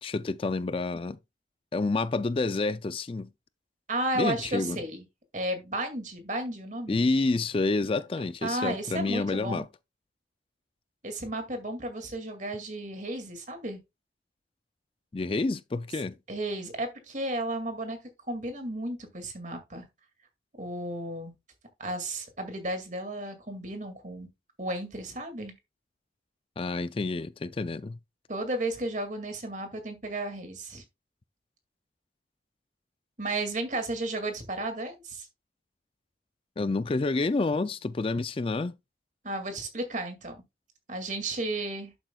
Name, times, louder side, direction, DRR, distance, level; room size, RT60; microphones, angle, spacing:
voice 1, 0.0-1.2 1.7-3.3 4.2-4.8 6.9-9.7 15.1-16.2 26.6-28.0 36.6-38.7, left 3 dB, 30° left, 0.4 m, -28 dB
voice 2, 3.9-5.0 5.3-7.1 8.4-9.7 11.0-13.8 16.3-18.0 18.3-19.9 20.6-21.3 21.8-24.3 24.6-25.5 28.3-30.8 33.2-35.3 39.2-40.4 40.9-41.9, right 1 dB, 40° right, 2.2 m, -33 dB
11.5 x 7.6 x 2.3 m
head